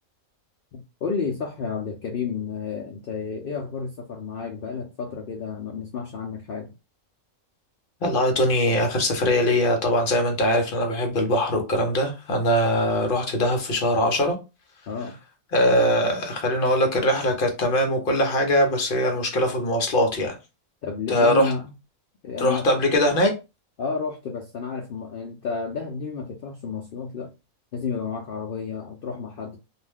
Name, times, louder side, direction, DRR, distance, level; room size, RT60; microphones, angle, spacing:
voice 1, 0.7-6.8 14.9-15.2 20.8-21.7 22.2-22.7 23.8-27.3 27.7-29.6, left 5 dB, 80° left, 0.5 m, -31 dB
voice 2, 8.0-14.4 15.5-20.4 21.1-21.5 22.4-23.3, left 1 dB, 50° left, 0.7 m, -21 dB
2.5 x 2.2 x 3.4 m
omnidirectional pair, 1.5 m